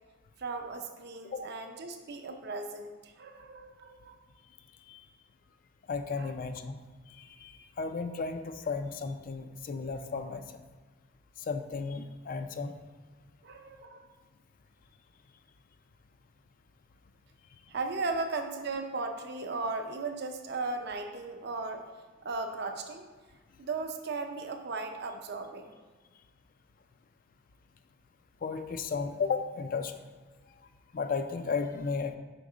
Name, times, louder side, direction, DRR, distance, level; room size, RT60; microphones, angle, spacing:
voice 1, 0.4-4.2 6.2-6.3 13.4-14.1 17.7-21.8 22.2-23.0 23.6-25.7, right 3 dB, 60° right, 5 dB, 0.6 m, -36 dB
voice 2, 5.9-6.8 7.1-10.6 11.4-12.7 28.4-29.9 30.9-32.1, left 5 dB, 45° left, 8 dB, 0.4 m, -34 dB
5.2 x 3.7 x 4.9 m, 1.4 s
head